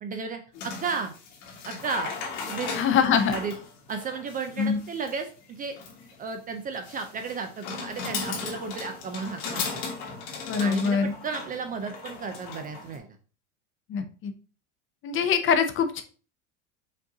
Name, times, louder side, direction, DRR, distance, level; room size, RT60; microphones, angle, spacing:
voice 1, 0.0-1.1 1.6-2.1 2.5-2.7 3.1-3.5 3.9-5.8 6.2-9.7 10.6-13.1, right 5 dB, 25° right, 6 dB, 0.4 m, -34 dB
sound 1, 0.5-13.0, left 5 dB, 70° left, 1.7 m, -37 dB
voice 2, 2.7-3.4 4.6-4.8 10.5-11.1 13.9-14.3 15.0-16.0, left 6 dB, 35° left, 9 dB, 0.6 m, -23 dB
5.2 x 2.6 x 3.7 m, 0.38 s
supercardioid pair, 125°, 36 cm